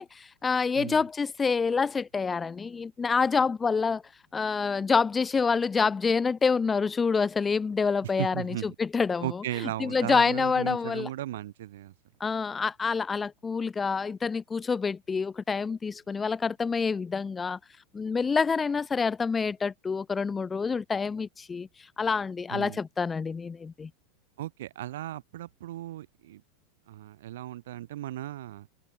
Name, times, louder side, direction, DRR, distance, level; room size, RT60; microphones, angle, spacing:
voice 1, 0.0-4.0 4.3-9.4 9.8-11.1 12.2-17.6 17.9-21.7 22.0-23.9, left 5 dB, 20° left, 1.3 m, -27 dB
voice 2, 8.2-8.7 9.2-11.9 22.5-22.8 24.4-26.4 26.9-28.7, right 14 dB, 80° right, 3.1 m, -36 dB
hypercardioid pair, 115°, 0 cm